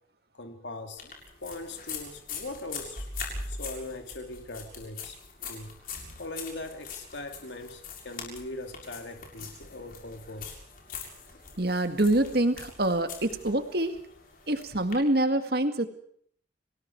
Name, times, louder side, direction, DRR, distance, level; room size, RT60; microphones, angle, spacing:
voice 1, 0.3-1.1 1.4-3.1 3.5-5.2 5.5-5.7 6.2-10.6, left 2 dB, 75° left, 5 dB, 2.8 m, -40 dB
sound 1, 1.0-14.9, left 4 dB, 50° left, 7.0 m, -42 dB
voice 2, 11.6-14.0 14.5-15.9, right 1 dB, 55° right, 8 dB, 2.0 m, -25 dB
30.0 x 19.5 x 4.7 m, 0.64 s
head